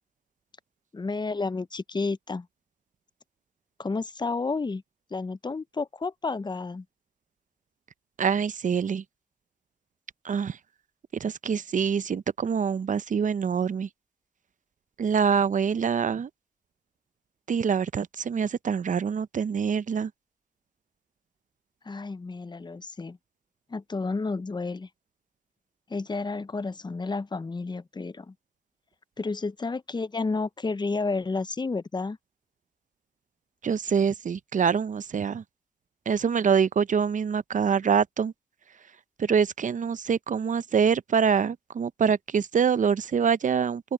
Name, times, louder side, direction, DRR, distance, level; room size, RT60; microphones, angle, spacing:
voice 1, 0.9-2.5 3.8-4.8 5.1-6.8 21.8-23.2 23.7-24.9 25.9-28.3 29.2-32.2, left 3 dB, 30° left, 0.7 m, -31 dB
voice 2, 8.2-9.0 10.2-10.6 11.2-13.9 15.0-16.3 17.5-20.1 33.6-35.4 36.1-38.3 39.2-43.8, right 6 dB, 60° right, 0.6 m, -25 dB
open air
cardioid pair, 50°, 15 cm